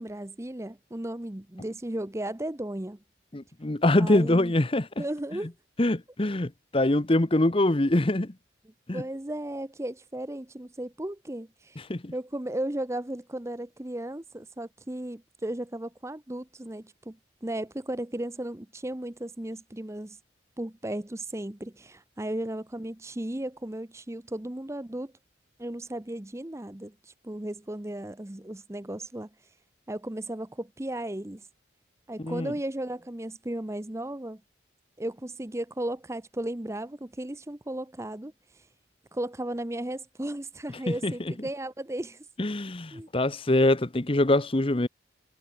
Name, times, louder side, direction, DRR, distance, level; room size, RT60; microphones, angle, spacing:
voice 1, 0.0-3.0 4.0-4.5 5.0-5.5 8.6-11.8 12.1-20.2 20.6-25.1 25.6-29.3 29.9-31.4 32.1-34.4 35.0-38.3 39.1-42.3 42.9-43.1, right 1 dB, 15° right, 0.7 m, -35 dB
voice 2, 3.3-5.0 5.8-8.3 8.9-9.0 11.9-12.1 32.2-32.5 40.9-41.1 42.4-44.9, left 1 dB, 30° left, 0.9 m, -24 dB
head